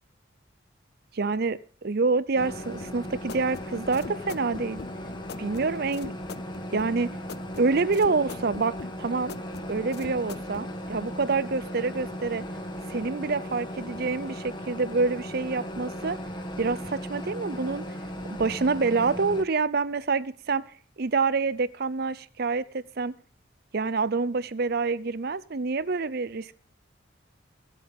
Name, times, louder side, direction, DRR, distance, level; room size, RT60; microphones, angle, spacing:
voice 1, 1.1-4.8 5.4-6.1 6.7-7.1 7.6-9.4 9.7-12.4 12.9-16.2 16.6-17.9 18.3-20.6 21.0-23.1 23.7-26.6, right 4 dB, 55° right, 17 dB, 0.6 m, -27 dB
sound 1, 2.4-19.4, equal, 25° left, 1.5 m, -37 dB
sound 2, 2.8-10.7, left 5 dB, 55° left, 0.5 m, -43 dB
23.0 x 8.1 x 3.6 m, 0.41 s
head